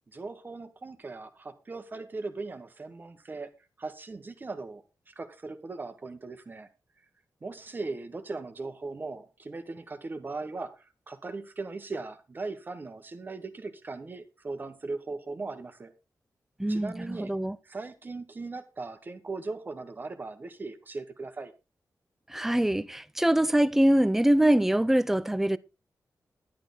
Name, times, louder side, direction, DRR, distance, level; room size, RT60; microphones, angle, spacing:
voice 1, 0.1-3.5 3.8-6.7 7.4-15.9 16.7-17.3 17.6-21.5, right 3 dB, 30° right, 1.3 m, -39 dB
voice 2, 16.6-17.6 22.3-25.6, right 1 dB, 5° right, 0.5 m, -24 dB
11.0 x 10.5 x 4.0 m
wide cardioid pair, 165°, 7 cm